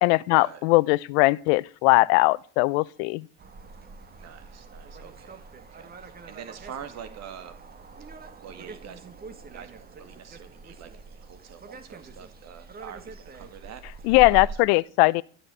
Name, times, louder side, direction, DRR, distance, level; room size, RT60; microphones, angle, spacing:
voice 1, 0.0-3.3 14.1-15.2, left 23 dB, 70° left, 0.6 m, -20 dB
sound 1, 3.4-14.6, right 3 dB, 25° right, 2.2 m, -43 dB
voice 2, 4.2-7.6 8.4-9.0 9.5-14.8, right 8 dB, 50° right, 2.2 m, -45 dB
13.5 x 6.4 x 9.1 m
supercardioid pair, 90°, 34 cm